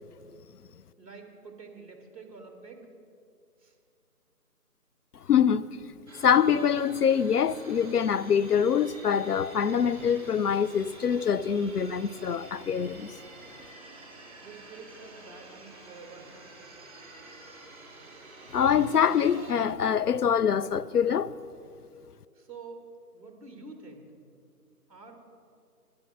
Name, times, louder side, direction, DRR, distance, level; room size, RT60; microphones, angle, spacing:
voice 1, 1.0-2.9 3.6-3.7 14.4-16.3 22.3-22.8 23.1-24.0 24.9-25.2, right 4 dB, 20° right, 1.5 m, -47 dB
voice 2, 5.3-5.7 6.2-13.1 18.5-21.3, left 7 dB, 75° left, 0.5 m, -24 dB
sound 1, 6.1-19.5, right 2 dB, 45° right, 2.9 m, -49 dB
12.0 x 10.5 x 5.9 m
figure-of-eight pair, 155°, 47 cm